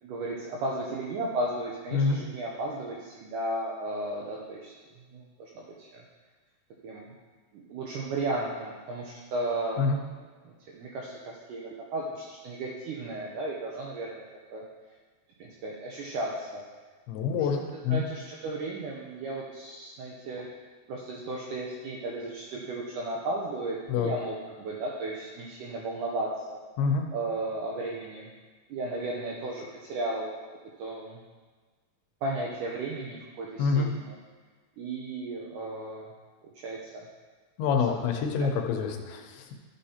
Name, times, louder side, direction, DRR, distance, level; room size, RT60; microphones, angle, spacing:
voice 1, 0.0-4.7 5.1-6.0 6.8-7.1 7.5-9.8 10.2-14.2 14.5-14.6 15.4-16.6 17.3-17.5 17.9-20.5 20.9-26.6 27.1-28.3 28.7-30.3 30.8-31.2 32.2-34.2 34.8-36.1 36.4-37.0 37.9-38.0 38.4-38.5, right 2 dB, 75° right, -3 dB, 2.0 m, -34 dB
voice 2, 1.9-2.2 9.8-10.0 17.1-18.1 23.9-24.1 26.8-27.1 33.6-33.9 37.6-39.5, left 5 dB, 90° left, 4 dB, 2.7 m, -27 dB
12.0 x 6.5 x 2.8 m, 1.4 s
omnidirectional pair, 4.4 m